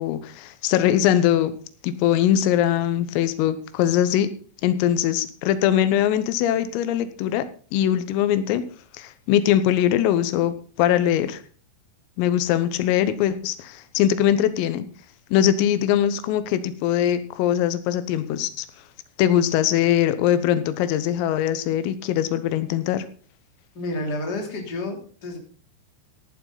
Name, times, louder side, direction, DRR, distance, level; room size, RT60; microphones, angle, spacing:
voice 1, 0.0-1.5 1.8-4.3 4.6-7.5 7.7-8.6 9.0-11.4 12.2-14.9 15.3-18.7 19.2-23.1, left 11 dB, 85° left, 12 dB, 3.7 m, -21 dB
voice 2, 23.7-25.4, left 2 dB, 25° left, 2 dB, 2.8 m, -30 dB
14.5 x 11.5 x 3.9 m, 0.41 s
omnidirectional pair, 5.8 m